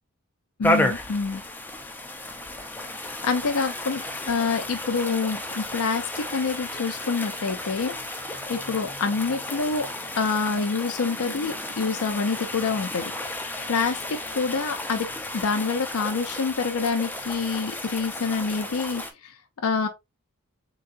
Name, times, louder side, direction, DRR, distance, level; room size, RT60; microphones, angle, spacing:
voice 1, 0.6-1.4 3.0-8.0 8.3-9.9 10.1-13.1 13.4-15.1 15.3-19.9, left 4 dB, 75° left, 0.6 m, -27 dB
sound 1, 0.6-19.1, left 1 dB, 10° left, 0.6 m, -32 dB
3.9 x 3.8 x 2.5 m
head